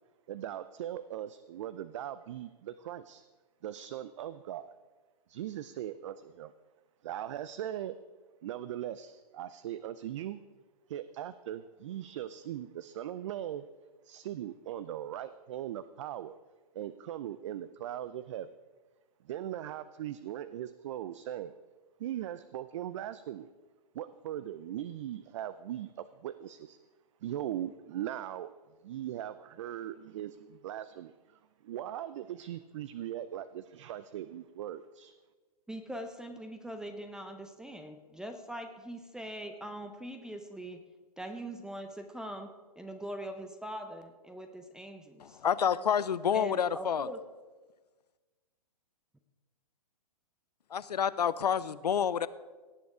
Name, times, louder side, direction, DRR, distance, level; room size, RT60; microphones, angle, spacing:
voice 1, 0.3-3.2 3.6-4.7 5.3-6.5 7.0-8.0 8.4-10.4 10.9-13.7 14.0-16.4 16.7-18.5 19.3-21.5 22.0-23.5 23.9-26.8 27.2-28.5 28.8-31.1 31.6-35.1, right 11 dB, 50° right, 14 dB, 0.5 m, -39 dB
voice 2, 35.7-40.8 41.2-45.4 46.3-47.2, right 1 dB, 5° right, 7 dB, 0.6 m, -42 dB
voice 3, 45.2-47.1 50.7-52.3, left 8 dB, 80° left, 17 dB, 0.6 m, -28 dB
17.5 x 7.0 x 4.9 m, 1.3 s
hypercardioid pair, 130°, 21 cm